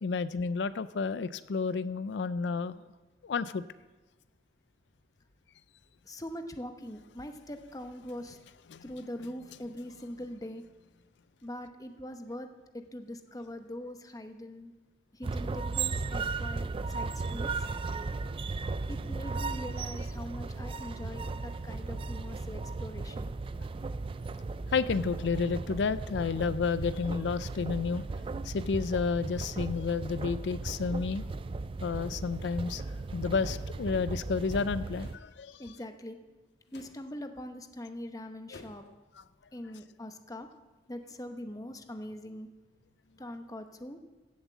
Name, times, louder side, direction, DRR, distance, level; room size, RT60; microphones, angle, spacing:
voice 1, 0.0-2.8 3.2-3.6 8.7-8.8 24.7-28.1 28.4-31.2 31.8-32.8 33.1-35.7 38.5-38.6, left 5 dB, 90° left, 15 dB, 0.4 m, -31 dB
voice 2, 6.0-8.4 8.8-10.6 11.4-12.5 12.7-14.7 15.1-17.5 18.9-23.3 35.6-36.2 36.7-38.9 39.5-40.5 40.9-42.5 43.2-44.0, left 1 dB, 20° left, 7 dB, 0.9 m, -42 dB
sound 1, 15.2-35.2, right 3 dB, 30° right, 0.3 m, -36 dB
sound 2, 33.5-33.8 35.0-35.3 36.7-37.0 38.5-38.9, left 1 dB, 70° left, 1.6 m, -52 dB
15.5 x 7.3 x 7.2 m, 1.2 s
head